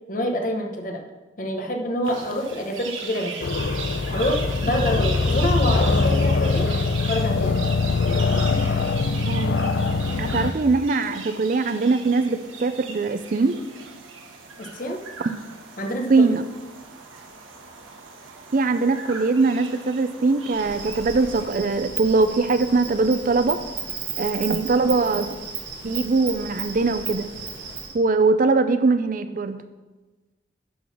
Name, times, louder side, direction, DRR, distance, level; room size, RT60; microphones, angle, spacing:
voice 1, 0.1-1.0 1.4-3.4 4.1-6.7 7.1-7.6 14.6-15.0 15.8-16.3, left 1 dB, 45° left, 2 dB, 1.0 m, -26 dB
sound 1, 2.0-21.4, right 5 dB, 90° right, 1.2 m, -38 dB
sound 2, 3.4-10.5, left 3 dB, 65° left, 0.5 m, -22 dB
voice 2, 9.2-9.6 10.2-13.6 16.1-16.4 18.5-23.6 24.2-25.4 25.8-27.3 27.9-29.6, right 3 dB, 45° right, 10 dB, 0.4 m, -21 dB
Insect, 20.5-27.9, right 6 dB, 65° right, 1.5 m, -34 dB
11.0 x 3.9 x 6.1 m, 1.2 s
head